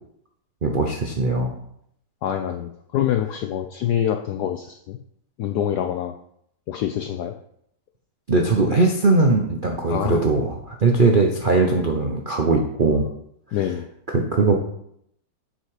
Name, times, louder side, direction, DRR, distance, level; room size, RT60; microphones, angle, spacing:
voice 1, 0.6-1.5 8.3-13.1 14.1-14.5, right 3 dB, 60° right, 1 dB, 0.5 m, -20 dB
voice 2, 2.2-5.0 5.4-6.2 6.7-7.3 9.9-10.2 11.1-11.2 13.5-13.9, left 10 dB, 80° left, 6 dB, 0.9 m, -25 dB
8.7 x 5.7 x 4.9 m, 0.72 s
omnidirectional pair, 2.3 m